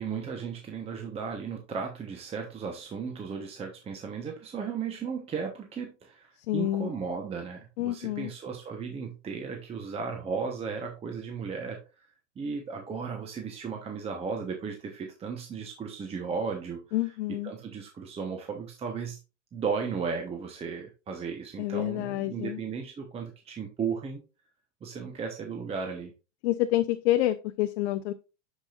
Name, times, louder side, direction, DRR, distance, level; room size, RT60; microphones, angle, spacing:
voice 1, 0.0-11.8 12.4-16.8 17.4-19.2 19.5-24.2 24.8-26.1, right 5 dB, 15° right, 3 dB, 1.0 m, -35 dB
voice 2, 6.5-6.9 7.8-8.3 16.9-17.5 21.6-22.6 26.4-28.1, left 15 dB, 60° left, 8 dB, 0.7 m, -28 dB
10.0 x 5.2 x 2.5 m, 0.31 s
supercardioid pair, 140°, 37 cm